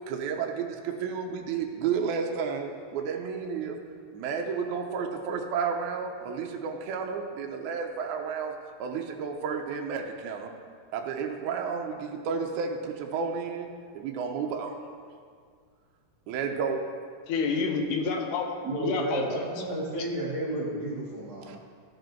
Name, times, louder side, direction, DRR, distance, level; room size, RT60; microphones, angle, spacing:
voice 1, 0.1-3.8 4.1-8.5 8.8-10.5 10.9-13.7 13.9-14.9 16.3-16.8 21.5-21.6, right 6 dB, 75° right, 2 dB, 1.9 m, -32 dB
voice 2, 17.3-19.4 19.9-20.1, left 4 dB, 75° left, 3 dB, 2.1 m, -29 dB
voice 3, 18.6-21.5, right 2 dB, 45° right, -7 dB, 1.3 m, -32 dB
13.5 x 5.2 x 4.5 m, 2.1 s
omnidirectional pair, 3.9 m